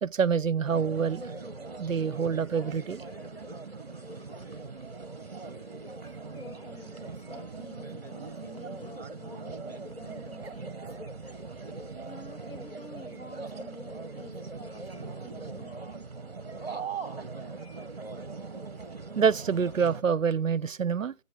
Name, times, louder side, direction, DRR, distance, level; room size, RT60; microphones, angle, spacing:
voice 1, 0.0-1.3 1.8-3.0 19.2-21.1, right 6 dB, 70° right, 0.6 m, -26 dB
sound 1, 0.6-20.0, right 4 dB, 45° right, 0.9 m, -41 dB
voice 2, 6.4-10.8 12.0-15.8, left 2 dB, 75° left, 2.7 m, -50 dB
14.5 x 8.3 x 4.6 m
figure-of-eight pair, 175°, 41 cm